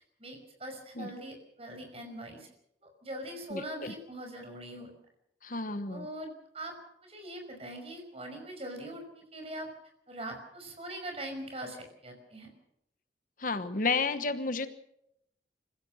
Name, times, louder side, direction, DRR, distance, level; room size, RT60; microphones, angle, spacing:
voice 1, 0.2-2.5 3.0-4.9 5.9-6.8 7.0-9.7 10.1-12.5, right 1 dB, 35° right, 4 dB, 5.7 m, -42 dB
voice 2, 3.5-3.9 5.4-6.1 13.4-14.7, left 4 dB, 50° left, 11 dB, 1.1 m, -31 dB
25.5 x 16.0 x 6.5 m, 0.78 s
head